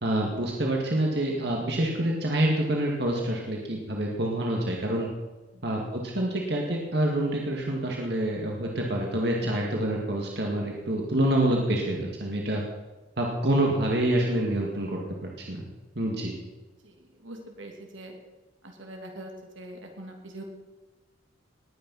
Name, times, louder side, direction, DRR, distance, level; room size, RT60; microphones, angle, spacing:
voice 1, 0.0-5.1 5.6-12.6 13.2-15.6 16.0-16.3, right 1 dB, 55° right, -1 dB, 2.2 m, -27 dB
voice 2, 9.4-9.8 16.8-18.2 18.6-20.4, right 1 dB, 80° right, 2 dB, 2.9 m, -43 dB
20.0 x 9.1 x 5.6 m, 1.2 s
head